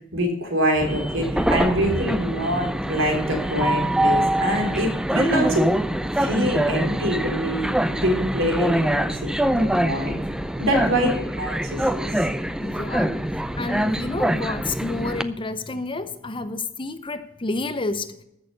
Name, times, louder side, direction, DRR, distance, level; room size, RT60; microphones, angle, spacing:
voice 1, 0.1-5.6 6.2-10.2 10.6-11.1 11.4-12.3, equal, 75° right, 3.4 m, -25 dB
Train, 0.8-15.2, right 1 dB, 5° right, 0.5 m, -24 dB
voice 2, 12.6-13.2 13.5-18.2, left 2 dB, 25° left, 0.8 m, -29 dB
14.0 x 6.7 x 6.7 m
head